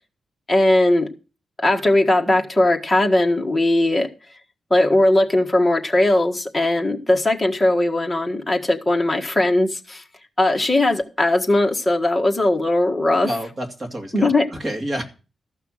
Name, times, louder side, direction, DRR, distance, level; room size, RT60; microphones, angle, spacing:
voice 1, 0.5-1.1 1.6-4.1 4.7-10.0 10.4-13.3 14.1-14.5, left 1 dB, 10° left, 1.6 m, -19 dB
voice 2, 13.2-15.0, equal, 25° right, 2.6 m, -29 dB
14.0 x 5.8 x 7.8 m
wide cardioid pair, 155°, 0 cm